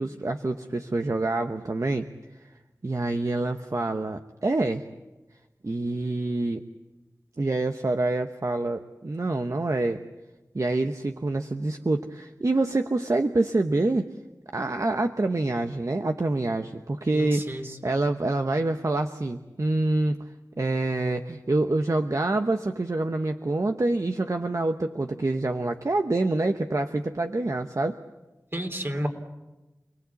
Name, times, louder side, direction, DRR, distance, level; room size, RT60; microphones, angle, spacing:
voice 1, 0.0-2.1 2.8-4.8 5.6-6.6 7.4-10.0 10.5-14.0 14.5-20.2 20.6-28.0, right 2 dB, 55° right, 6 dB, 1.0 m, -26 dB
voice 2, 17.1-17.8 28.5-29.1, equal, 35° right, 5 dB, 3.4 m, -31 dB
29.0 x 19.5 x 8.4 m, 1.1 s
wide cardioid pair, 40°, 7 cm